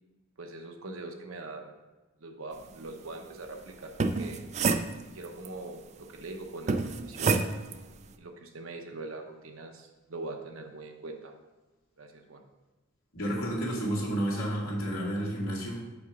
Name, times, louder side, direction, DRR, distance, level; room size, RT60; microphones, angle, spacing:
voice 1, 0.4-1.7 2.2-4.4 5.0-7.5 8.2-11.3 12.0-12.4, right 2 dB, 80° right, 3 dB, 1.0 m, -42 dB
sound 1, 3.8-5.5 6.7-7.8, right 4 dB, 35° right, 0.4 m, -28 dB
voice 2, 13.1-15.9, right 1 dB, 85° left, -5 dB, 2.3 m, -31 dB
5.4 x 5.0 x 6.0 m, 1.1 s
head